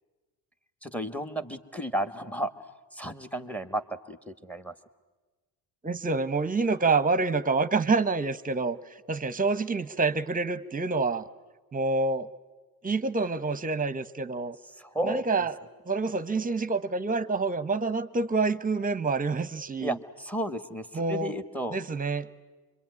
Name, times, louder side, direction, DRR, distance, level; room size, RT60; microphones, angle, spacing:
voice 1, 0.8-2.5 2.9-3.8 4.1-4.7 14.8-15.5 19.8-21.8, right 1 dB, 5° left, 11 dB, 1.6 m, -33 dB
voice 2, 5.8-8.8 9.1-11.3 11.7-12.3 12.8-14.6 15.0-15.6 15.9-20.0 20.9-21.4 21.7-22.3, right 3 dB, 20° right, 15 dB, 1.1 m, -27 dB
26.0 x 24.0 x 9.6 m, 1.2 s
supercardioid pair, 90°, 44 cm